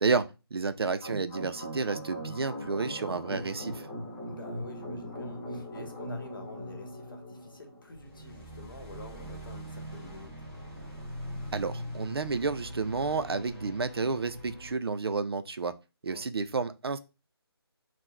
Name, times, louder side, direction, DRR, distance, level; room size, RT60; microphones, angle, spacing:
voice 1, 0.5-3.9 11.5-15.7 16.0-17.0, right 4 dB, 70° right, 0.4 m, -30 dB
sound 1, 1.0-14.7, equal, ahead, 0.7 m, -41 dB
voice 2, 4.2-10.4 16.1-16.3, left 2 dB, 55° left, 0.9 m, -48 dB
3.0 x 2.0 x 3.7 m
figure-of-eight pair, 180°, 14 cm